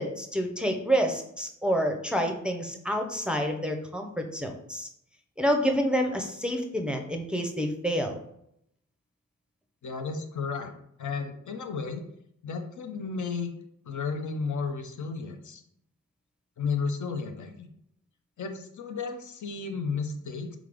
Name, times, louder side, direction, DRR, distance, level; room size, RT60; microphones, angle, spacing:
voice 1, 0.0-4.9 5.4-8.2, equal, 5° right, 4 dB, 0.5 m, -28 dB
voice 2, 9.8-10.7 11.0-12.0 12.4-13.5 13.9-15.6 16.6-17.7 18.4-20.6, left 5 dB, 70° left, 5 dB, 0.6 m, -33 dB
3.7 x 3.6 x 3.4 m, 0.74 s
wide cardioid pair, 75°, 31 cm